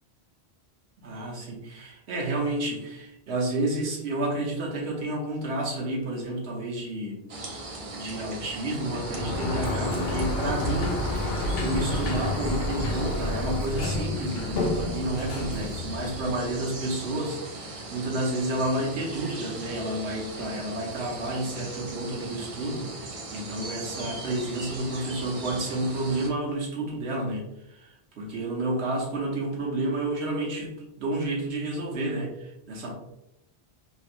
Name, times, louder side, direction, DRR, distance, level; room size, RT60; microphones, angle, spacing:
voice 1, 1.0-7.2 7.9-33.0, right 1 dB, 80° right, -1 dB, 1.1 m, -30 dB
sound 1, 7.3-26.3, right 2 dB, 45° right, 0.5 m, -39 dB
Sliding door, 8.8-16.6, left 2 dB, 65° left, 0.8 m, -30 dB
3.0 x 3.0 x 2.5 m, 0.85 s
omnidirectional pair, 1.1 m